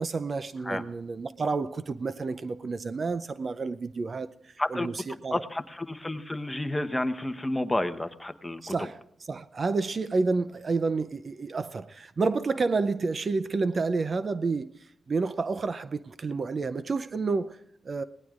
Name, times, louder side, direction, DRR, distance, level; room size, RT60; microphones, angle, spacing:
voice 1, 0.0-5.4 8.6-14.7 15.1-18.0, right 4 dB, 45° right, 0.5 m, -30 dB
voice 2, 5.3-8.6, left 1 dB, 10° left, 1.0 m, -30 dB
27.0 x 18.5 x 2.5 m
cardioid pair, 80°, 0 cm